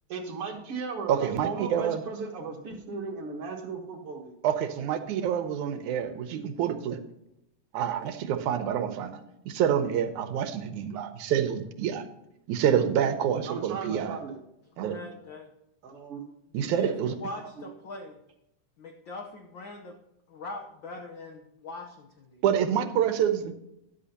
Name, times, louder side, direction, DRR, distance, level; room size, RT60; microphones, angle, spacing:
voice 1, 0.1-4.4 13.5-14.4 15.8-16.2 17.3-17.7, right 4 dB, 55° right, 3 dB, 2.1 m, -36 dB
voice 2, 1.1-2.0 4.4-7.0 7.7-12.1 12.5-14.2 14.8-15.0 16.5-17.1 22.4-23.5, right 9 dB, 80° right, 9 dB, 2.2 m, -27 dB
voice 3, 14.8-15.5 16.6-18.2 18.8-20.0 20.3-22.4, left 3 dB, 70° left, 4 dB, 1.1 m, -41 dB
13.5 x 10.5 x 2.9 m, 0.84 s
omnidirectional pair, 3.5 m